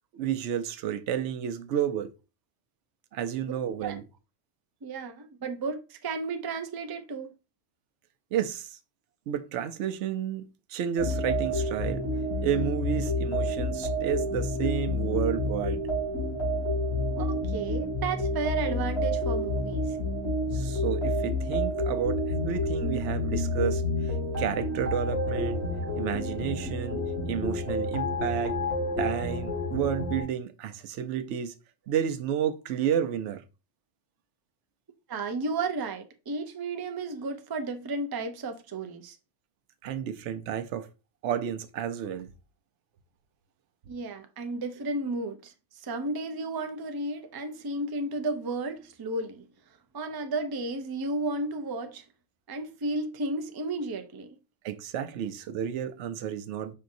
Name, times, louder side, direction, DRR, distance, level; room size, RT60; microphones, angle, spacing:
voice 1, 0.1-2.1 3.1-4.0 8.3-8.8 9.3-10.4 10.7-12.1 12.4-15.8 20.5-25.6 25.9-28.6 29.0-31.5 31.9-33.4 39.8-40.9 41.2-42.3 54.6-56.7, right 9 dB, 85° right, 0.9 m, -31 dB
voice 2, 4.8-7.3 17.2-20.0 35.1-39.2 43.9-49.5 49.9-52.0 52.5-54.4, right 3 dB, 35° right, 0.3 m, -33 dB
sound 1, 11.0-30.2, left 1 dB, 70° left, 2.5 m, -29 dB
5.4 x 3.7 x 2.6 m
omnidirectional pair, 1.2 m